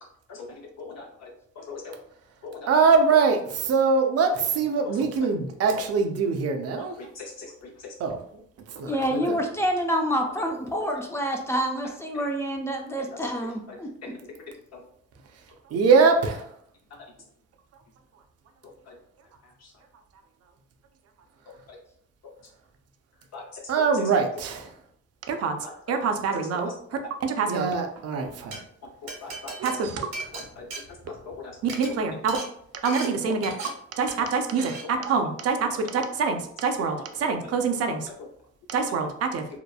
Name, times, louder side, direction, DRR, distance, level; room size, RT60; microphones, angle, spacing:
voice 1, 0.8-1.3 1.6-1.9 2.4-2.7 4.9-5.3 5.6-5.8 7.0-7.5 14.7-14.8 18.9-19.0 23.3-23.4 23.8-24.0 25.6-26.0 26.4-26.7 29.0-29.5 30.3-30.6 31.4-31.8 33.2-33.5 35.7-35.8 38.7-38.9, left 4 dB, 60° left, -1 dB, 0.6 m, -40 dB
voice 2, 2.7-6.9 8.0-8.2 8.8-9.2 15.7-16.4 23.7-24.7 25.3-25.6 25.9-26.7 27.2-28.6 29.6-30.1 31.8-32.4 32.8-33.5 34.0-35.6 35.9-38.0 38.7-39.4, right 5 dB, 55° right, 5 dB, 0.5 m, -24 dB
voice 3, 8.8-14.1, equal, 10° left, 1 dB, 0.3 m, -27 dB
Glass, 28.3-28.6 29.1-31.4 31.6-31.9 32.3-32.5 32.9-33.1 33.4-33.7 34.1-34.3 34.6-34.8, right 3 dB, 85° right, 1.2 m, -37 dB
2.8 x 2.1 x 2.3 m, 0.67 s
cardioid pair, 90°, 30 cm